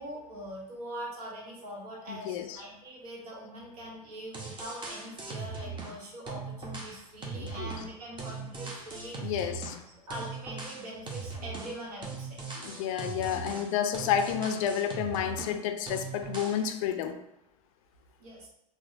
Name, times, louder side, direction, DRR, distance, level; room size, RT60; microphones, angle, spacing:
voice 1, 0.0-9.5 10.1-12.4 18.2-18.5, right 1 dB, 65° right, -3 dB, 1.2 m, -43 dB
voice 2, 2.1-2.6 7.3-7.7 9.2-9.8 12.6-17.2, left 9 dB, 55° left, 7 dB, 0.4 m, -30 dB
sound 1, 4.1-4.2 4.3-6.0 6.3-9.8 10.1-15.6 15.9-16.6, right 4 dB, 25° right, 0.8 m, -39 dB
4.6 x 2.2 x 2.6 m, 0.84 s
figure-of-eight pair, 80°, 20 cm